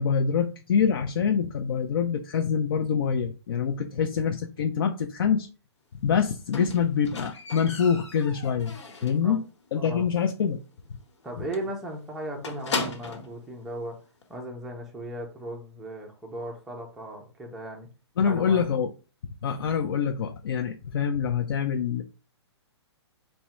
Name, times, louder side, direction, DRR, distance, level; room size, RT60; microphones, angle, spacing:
voice 1, 0.0-5.5 6.0-8.8 9.0-9.4 9.7-10.6 18.2-18.9 19.4-22.0, left 7 dB, 55° left, 0.4 m, -25 dB
Squeak, 6.5-9.3 9.6-10.0 10.3-10.4 10.8-10.9 11.1-11.3 11.5-13.4 14.2-14.3, left 3 dB, 90° left, 1.1 m, -36 dB
voice 2, 9.0-9.3 9.7-10.0 11.2-14.0 14.3-17.9 18.3-18.6, right 1 dB, 5° right, 0.4 m, -37 dB
3.5 x 2.1 x 4.1 m
hypercardioid pair, 165°, 15 cm